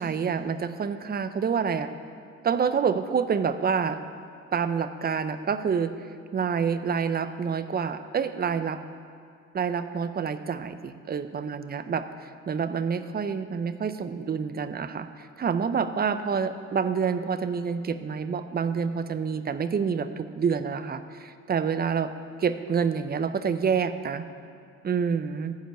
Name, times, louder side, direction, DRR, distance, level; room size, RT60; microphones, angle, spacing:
voice 1, 0.0-1.9 2.4-4.0 4.5-5.9 6.3-8.8 9.5-22.1 22.4-24.3 24.8-25.5, right 6 dB, 30° right, 11 dB, 0.6 m, -27 dB
11.5 x 5.1 x 7.8 m, 2.3 s
cardioid pair, 90°, 30 cm